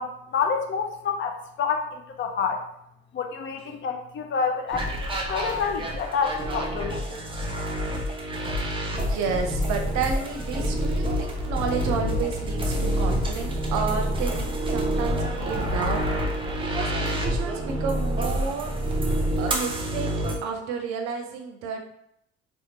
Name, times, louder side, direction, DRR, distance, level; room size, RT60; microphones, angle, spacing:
voice 1, 0.0-2.6 3.1-7.2, left 6 dB, 35° left, 3 dB, 0.5 m, -28 dB
sound 1, 4.7-20.4, equal, 15° right, 0.7 m, -27 dB
voice 2, 8.9-16.0 16.6-18.8 19.4-20.2 20.4-21.9, right 5 dB, 55° right, 4 dB, 0.7 m, -31 dB
4.2 x 2.2 x 2.8 m, 0.75 s
figure-of-eight pair, 50°, 33 cm